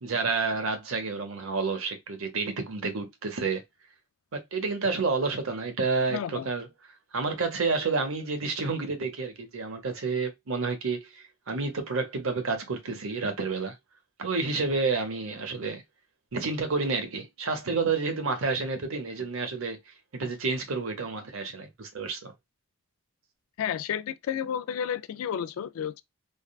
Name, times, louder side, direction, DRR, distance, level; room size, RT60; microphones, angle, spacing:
voice 1, 0.0-3.6 4.3-6.7 7.1-13.8 14.2-15.8 16.3-19.8 20.1-22.3, right 4 dB, 70° right, 0.8 m, -29 dB
voice 2, 6.1-6.5 23.6-26.0, left 8 dB, 75° left, 0.3 m, -31 dB
3.5 x 2.2 x 2.2 m
head